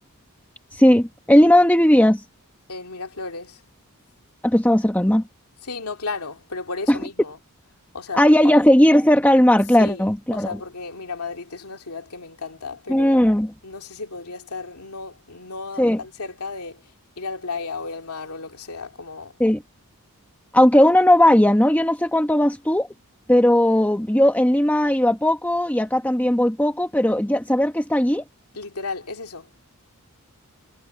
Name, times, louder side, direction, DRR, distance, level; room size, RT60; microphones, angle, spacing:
voice 1, 0.7-2.2 4.4-5.2 6.9-7.0 8.2-10.5 12.9-13.5 15.8-16.0 19.4-19.6 20.5-22.9 23.3-28.2, left 1 dB, 5° left, 1.1 m, -17 dB
voice 2, 2.7-3.6 5.6-7.4 7.9-8.6 9.8-13.2 13.6-16.8 17.2-19.3 28.5-29.5, left 4 dB, 85° left, 2.5 m, -34 dB
head